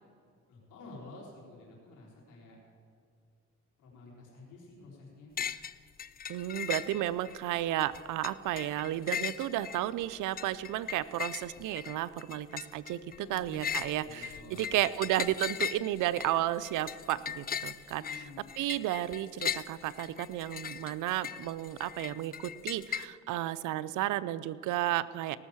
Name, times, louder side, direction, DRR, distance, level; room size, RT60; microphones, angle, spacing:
voice 1, 0.5-2.6 3.8-5.3 13.1-13.6 14.0-14.7 17.9-18.5, left 2 dB, 85° left, -3 dB, 4.1 m, -50 dB
sound 1, 5.4-5.7 6.0-7.4 7.8-23.1, left 8 dB, 30° left, 0.4 m, -39 dB
voice 2, 6.3-18.3 18.6-25.4, right 14 dB, 80° right, 15 dB, 0.5 m, -33 dB
18.0 x 6.3 x 7.2 m, 2.3 s
cardioid pair, 90°, 30 cm